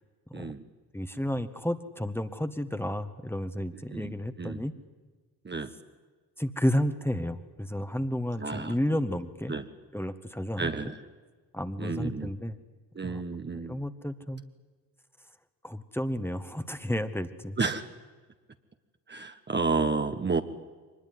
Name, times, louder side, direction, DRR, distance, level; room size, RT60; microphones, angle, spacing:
voice 1, 0.3-0.6 3.9-4.6 5.4-5.7 8.4-8.8 9.5-9.7 10.6-11.0 11.8-12.3 12.9-13.8 17.6-17.8 19.1-20.4, right 4 dB, 20° right, 7 dB, 1.5 m, -31 dB
voice 2, 0.9-4.7 6.4-9.5 9.9-10.7 11.5-12.5 13.0-13.2 13.5-14.4 15.6-17.6, equal, 5° left, 9 dB, 1.7 m, -31 dB
24.0 x 20.5 x 9.6 m, 1.4 s
figure-of-eight pair, 50°, 50 cm